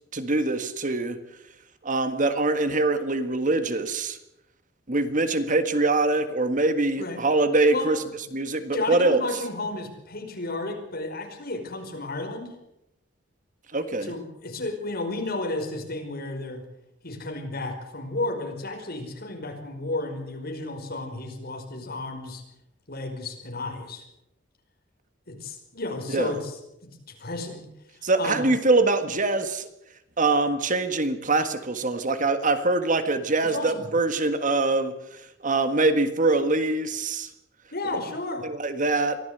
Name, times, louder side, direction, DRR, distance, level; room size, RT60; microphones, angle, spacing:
voice 1, 0.1-1.2 1.8-4.2 4.9-8.0 8.3-9.2 13.7-14.1 26.1-26.3 28.0-29.7 30.2-34.9 35.4-37.3 38.4-39.2, right 2 dB, 40° right, 10 dB, 1.6 m, -23 dB
voice 2, 8.7-12.5 13.9-16.6 17.0-22.4 22.9-24.0 25.3-27.7 27.9-28.4 33.4-33.9 37.7-38.5, left 2 dB, 55° left, 3 dB, 5.2 m, -33 dB
23.5 x 15.5 x 8.0 m, 0.82 s
head